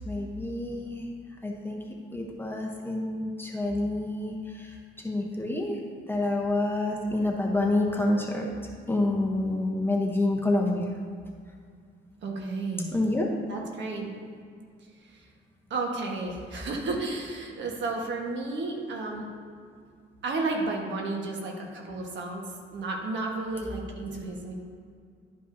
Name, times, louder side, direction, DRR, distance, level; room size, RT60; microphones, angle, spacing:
voice 1, 0.0-1.1 1.4-1.8 2.1-5.8 6.1-8.5 8.9-10.9 12.9-13.3, left 2 dB, 10° left, -1 dB, 0.9 m, -28 dB
voice 2, 12.2-12.9 13.5-14.1 14.9-15.3 15.7-19.3 20.2-24.5, right 3 dB, 65° right, 0 dB, 1.4 m, -32 dB
11.0 x 5.3 x 2.7 m, 2.2 s
cardioid pair, 90°, 20 cm